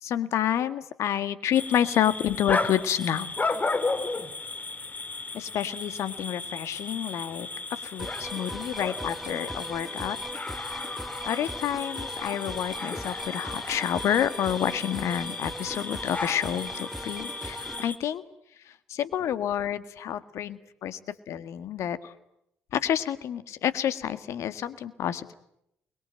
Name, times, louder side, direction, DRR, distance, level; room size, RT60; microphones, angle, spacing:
voice 1, 0.0-3.3 5.3-10.2 10.6-10.9 11.2-18.2 18.6-21.0 21.3-22.1 22.7-25.3, left 10 dB, 65° left, 13 dB, 1.8 m, -29 dB
sound 1, 1.5-18.0, left 3 dB, 30° left, 3.3 m, -34 dB
sound 2, 8.0-17.9, equal, ahead, 1.4 m, -40 dB
28.5 x 22.0 x 9.0 m, 0.79 s
hypercardioid pair, 50°, 5 cm